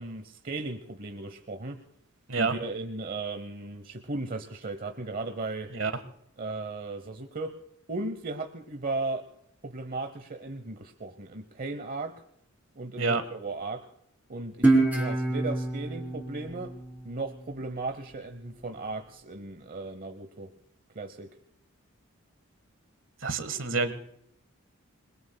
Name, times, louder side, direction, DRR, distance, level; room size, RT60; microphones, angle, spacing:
voice 1, 0.0-1.8 2.4-5.7 6.4-7.6 7.9-9.3 9.6-12.2 12.8-13.9 14.3-16.7 17.0-20.5 20.9-21.3, right 3 dB, 45° right, 8 dB, 1.0 m, -36 dB
Guitar, 14.6-17.8, right 2 dB, 10° right, 3.4 m, -27 dB
voice 2, 23.2-23.9, right 4 dB, 70° right, 11 dB, 1.6 m, -27 dB
27.5 x 21.5 x 2.3 m, 0.72 s
head